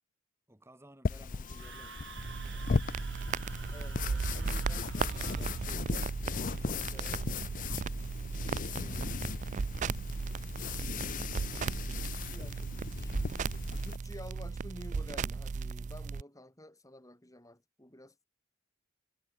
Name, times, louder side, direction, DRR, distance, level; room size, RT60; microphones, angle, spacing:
voice 1, 0.5-2.8 6.3-9.5, right 1 dB, 15° right, 2.7 m, -59 dB
sound 1, 1.0-14.0, left 4 dB, 40° left, 0.5 m, -38 dB
Screaming, 1.4-5.8, right 7 dB, 60° right, 2.2 m, -50 dB
sound 2, 2.2-16.2, right 5 dB, 35° right, 0.3 m, -36 dB
voice 2, 3.7-5.8 6.2-7.2 12.3-13.1 13.7-18.3, left 1 dB, 15° left, 6.5 m, -51 dB
head